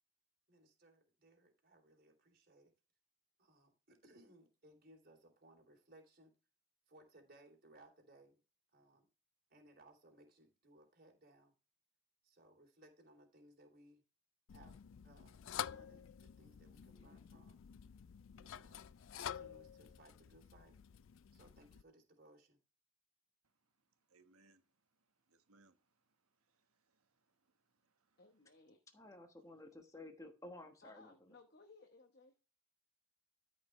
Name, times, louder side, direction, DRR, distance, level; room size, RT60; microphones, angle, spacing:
voice 1, 0.5-2.7 3.4-6.3 6.9-8.4 8.7-9.1 9.5-11.5 12.2-14.0 14.5-17.6 18.3-18.8 19.1-20.8 21.3-22.6, right 1 dB, 45° right, 3.0 m, -64 dB
sound 1, 14.5-21.8, left 9 dB, 65° left, 0.4 m, -49 dB
voice 2, 23.4-28.2, right 3 dB, 90° right, 1.3 m, -74 dB
voice 3, 28.2-28.8 30.8-32.3, left 3 dB, 50° left, 1.0 m, -62 dB
voice 4, 28.9-31.3, left 2 dB, 15° left, 1.2 m, -54 dB
13.5 x 5.4 x 3.2 m
head